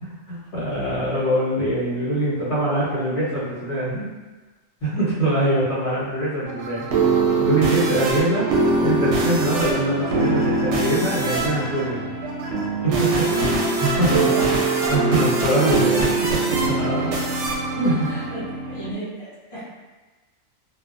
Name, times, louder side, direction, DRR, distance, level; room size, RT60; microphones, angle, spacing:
voice 1, 0.0-4.1 4.8-6.8 7.4-12.1 12.8-13.3 13.8-14.3 14.9-17.4 17.7-18.1, right 1 dB, 60° left, -10 dB, 1.3 m, -23 dB
sound 1, 6.4-18.9, right 3 dB, 70° right, 0.8 m, -22 dB
voice 2, 13.1-13.4 14.0-14.5 17.7-19.6, right 1 dB, 25° left, -11 dB, 0.8 m, -34 dB
2.5 x 2.2 x 2.5 m, 1.2 s
omnidirectional pair, 1.4 m